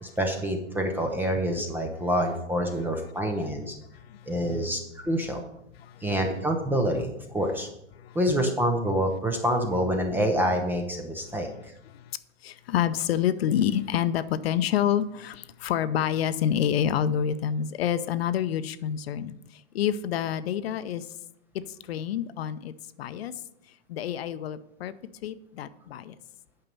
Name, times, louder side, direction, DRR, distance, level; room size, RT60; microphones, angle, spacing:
voice 1, 0.0-3.7 4.3-5.4 6.0-7.7 8.1-11.7, equal, 5° right, 3 dB, 0.5 m, -27 dB
voice 2, 3.9-4.3 5.8-6.1 7.9-8.2 11.3-11.4 11.8-12.2 12.4-21.1 21.9-22.7 23.0-23.3 23.9-24.9 25.2-26.1, left 9 dB, 55° left, 13 dB, 0.6 m, -28 dB
9.0 x 5.7 x 5.3 m, 0.81 s
hypercardioid pair, 130°, 37 cm